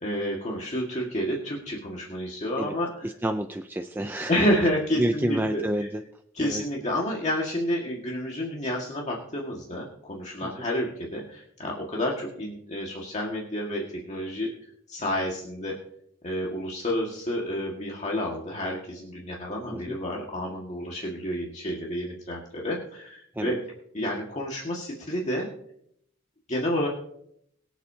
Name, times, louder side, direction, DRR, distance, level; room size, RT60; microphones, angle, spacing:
voice 1, 0.0-3.1 4.3-5.9 6.3-15.7 16.2-23.6 23.9-25.5 26.5-26.9, equal, 35° left, -2 dB, 1.8 m, -30 dB
voice 2, 3.0-4.5 5.0-6.0 6.4-6.6 10.4-10.5 19.7-20.0 23.4-23.6, right 1 dB, 10° right, 5 dB, 0.4 m, -29 dB
23.0 x 8.1 x 2.8 m, 0.70 s
head